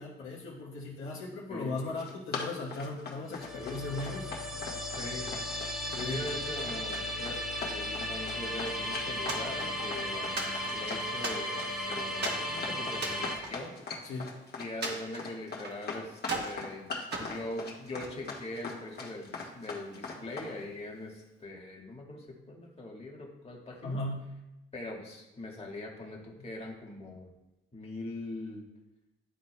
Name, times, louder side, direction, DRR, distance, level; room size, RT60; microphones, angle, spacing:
voice 1, 0.0-4.3 5.9-6.3 10.0-10.3 14.0-14.3 23.8-24.2, left 2 dB, 75° left, -3 dB, 1.1 m, -37 dB
Run, 1.8-20.5, left 4 dB, 50° left, 1.4 m, -40 dB
sound 1, 3.3-13.4, left 1 dB, 5° right, 1.1 m, -36 dB
voice 2, 4.9-5.4 6.0-7.4 7.7-13.7 14.6-16.9 17.2-24.0 24.7-27.3 27.7-28.6, left 1 dB, 30° left, -2 dB, 1.7 m, -42 dB
sound 2, 9.3-9.9 10.4-11.8 12.2-12.5 12.9-14.3 14.8-15.8 16.2-16.6 17.1-18.2, right 3 dB, 55° right, 1.4 m, -38 dB
11.0 x 3.9 x 2.2 m, 0.97 s
cardioid pair, 80°, 21 cm